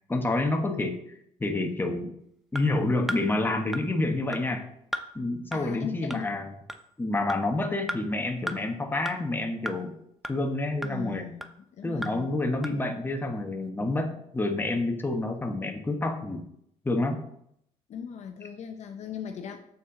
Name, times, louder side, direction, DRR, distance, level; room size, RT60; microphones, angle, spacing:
voice 1, 0.1-1.0 1.4-2.1 2.5-4.7 5.1-6.5 7.0-9.9 10.3-11.3 11.8-16.4 16.8-17.2, left 2 dB, 15° left, 3 dB, 1.0 m, -28 dB
sound 1, 2.5-2.6 3.1-3.2 3.7-3.8 4.3-4.4 4.9-5.1 5.5-5.6 6.1-6.2 6.7-6.8 7.3-7.4 7.9-8.0 8.5-8.6 9.1-9.2 9.7-9.8 10.2-10.3 10.8-10.9 11.4-11.5 12.0-12.1 12.6-12.7, equal, ahead, 0.5 m, -33 dB
voice 2, 5.5-6.3 10.8-11.5 11.8-12.4 17.9-19.6, left 7 dB, 55° left, 5 dB, 0.7 m, -38 dB
7.1 x 4.2 x 3.7 m, 0.72 s
supercardioid pair, 80°, 14 cm